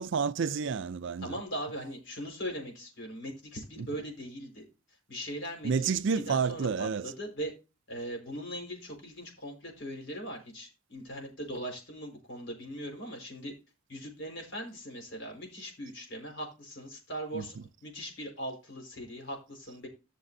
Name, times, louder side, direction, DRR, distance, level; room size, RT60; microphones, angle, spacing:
voice 1, 0.0-1.4 3.8-4.0 5.6-7.1 17.3-17.6, right 5 dB, 55° right, 0.4 m, -30 dB
voice 2, 1.2-4.6 5.1-5.9 6.1-7.5 7.9-13.5 13.9-19.9, equal, 55° left, 4.5 m, -40 dB
15.5 x 6.7 x 2.6 m
head